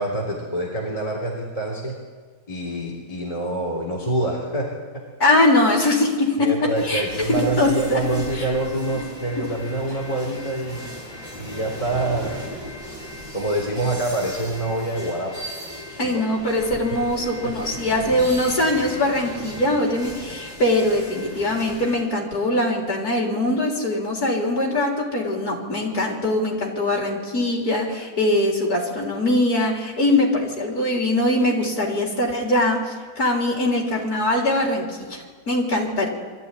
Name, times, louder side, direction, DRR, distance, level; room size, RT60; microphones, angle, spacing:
voice 1, 0.0-1.9 2.5-4.7 4.9-5.0 6.4-10.9 11.3-12.3 13.3-15.3 15.9-16.2 17.4-17.5, right 1 dB, 15° left, -4 dB, 3.4 m, -26 dB
voice 2, 5.2-8.0 9.4-9.5 16.0-36.1, left 1 dB, 45° left, -1 dB, 4.2 m, -22 dB
sound 1, 6.7-22.0, equal, 10° right, 6.5 m, -37 dB
23.5 x 14.0 x 9.9 m, 1.5 s
omnidirectional pair, 2.1 m